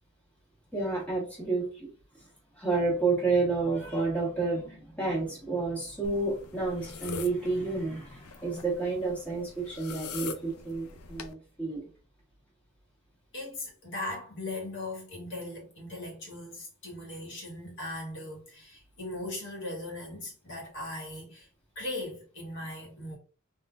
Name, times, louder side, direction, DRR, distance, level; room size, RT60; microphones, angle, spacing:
voice 1, 0.7-1.9 2.1-2.3 2.6-11.8, right 3 dB, 5° left, 1.2 m, -30 dB
sound 1, 6.0-11.3, left 5 dB, 80° left, 0.4 m, -43 dB
voice 2, 13.3-21.5 21.7-23.2, left 2 dB, 55° left, 1.3 m, -39 dB
3.7 x 2.4 x 2.2 m
head